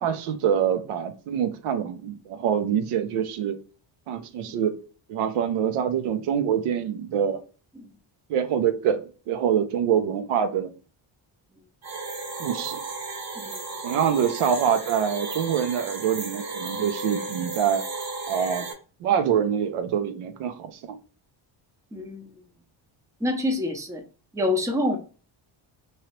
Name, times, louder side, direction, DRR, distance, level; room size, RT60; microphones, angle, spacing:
voice 1, 0.0-3.6 4.1-4.7 5.1-7.4 8.3-10.7 12.4-12.8 13.8-17.8 18.3-18.7 19.0-21.0, right 8 dB, 85° right, 0.7 m, -25 dB
sound 1, 11.8-18.7, right 3 dB, 45° right, 0.9 m, -34 dB
voice 2, 21.9-22.2 23.2-24.0 24.3-25.0, left 1 dB, 5° right, 0.5 m, -26 dB
3.1 x 2.8 x 3.0 m
cardioid pair, 120°, 49 cm